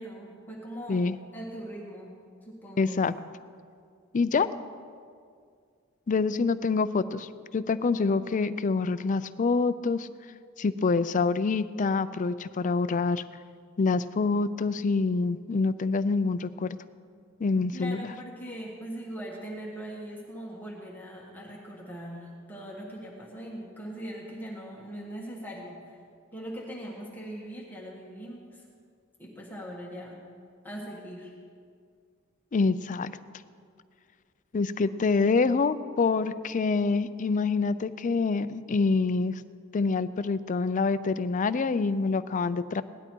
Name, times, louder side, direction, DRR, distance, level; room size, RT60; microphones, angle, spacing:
voice 1, 0.0-1.1 1.3-2.2 2.5-3.0 17.7-26.0 26.3-28.6 29.2-30.3 30.6-31.3, equal, 10° left, -4 dB, 1.6 m, -40 dB
voice 2, 2.8-3.1 4.1-4.5 6.1-10.1 10.6-13.2 13.8-16.8 17.4-18.1 32.5-33.1 34.5-39.4 39.7-42.8, left 4 dB, 40° left, 14 dB, 0.4 m, -26 dB
17.5 x 11.5 x 4.6 m, 2.2 s
head